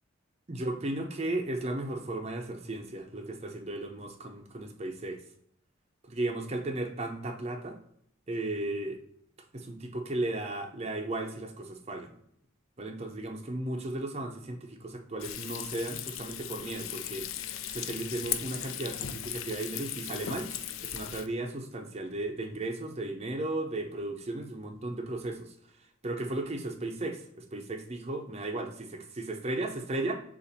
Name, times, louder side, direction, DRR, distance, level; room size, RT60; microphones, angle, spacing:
voice 1, 0.5-5.2 6.1-7.8 8.3-9.0 9.5-12.1 12.8-17.3 17.7-20.5 20.8-25.5 26.0-30.1, right 2 dB, 30° right, 4 dB, 0.6 m, -35 dB
Frying (food), 15.2-21.3, left 10 dB, 70° left, 0.3 m, -37 dB
6.7 x 2.5 x 2.8 m, 0.68 s
head